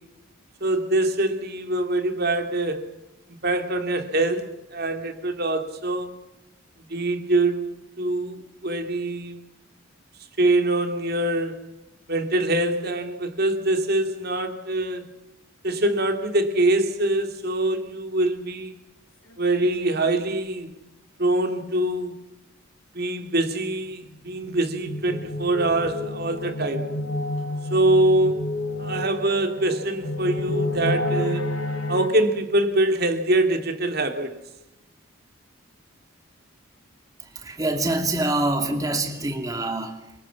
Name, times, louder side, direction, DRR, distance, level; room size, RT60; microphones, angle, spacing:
voice 1, 0.6-2.9 3.3-6.1 6.9-7.6 8.0-8.4 8.6-9.4 10.4-11.7 12.1-15.0 15.6-18.7 19.4-20.7 21.2-22.2 22.9-26.9 27.7-28.5 28.8-31.5 31.9-34.3, right 1 dB, 45° right, 2.8 m, -24 dB
sound 1, 19.3-19.4 19.6-19.7 20.0-20.1 24.3-32.1, left 1 dB, 80° left, 5.7 m, -29 dB
voice 2, 37.2-40.1, right 2 dB, 15° right, 2.6 m, -26 dB
29.0 x 25.0 x 7.3 m
head